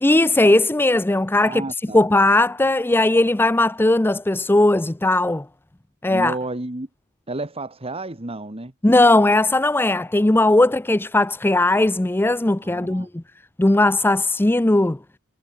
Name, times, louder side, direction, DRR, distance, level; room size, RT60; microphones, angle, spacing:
voice 1, 0.0-1.6 1.9-5.5 6.0-6.4 8.8-13.2 13.6-15.0, left 2 dB, 10° left, 0.5 m, -18 dB
voice 2, 1.4-2.1 6.1-6.9 7.3-8.7 12.6-13.1, right 2 dB, 25° right, 1.7 m, -31 dB
head